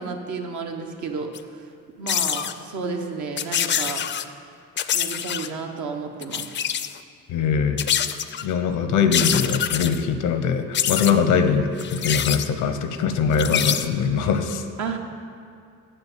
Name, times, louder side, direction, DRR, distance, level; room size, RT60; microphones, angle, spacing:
voice 1, 0.0-1.3 2.0-4.1 4.9-6.5 14.8-15.0, right 4 dB, 70° right, 3 dB, 1.1 m, -31 dB
sound 1, 1.3-1.4 2.1-2.5 3.4-4.2 4.8-5.5 6.2-7.0 7.8-8.5 9.1-10.0 10.7-11.2 11.8-12.5 13.3-13.9, left 9 dB, 40° left, 0.4 m, -25 dB
voice 2, 7.3-7.8 8.4-14.6, left 6 dB, 85° left, 8 dB, 0.8 m, -22 dB
7.0 x 6.7 x 7.4 m, 2.3 s
cardioid pair, 90°, 30 cm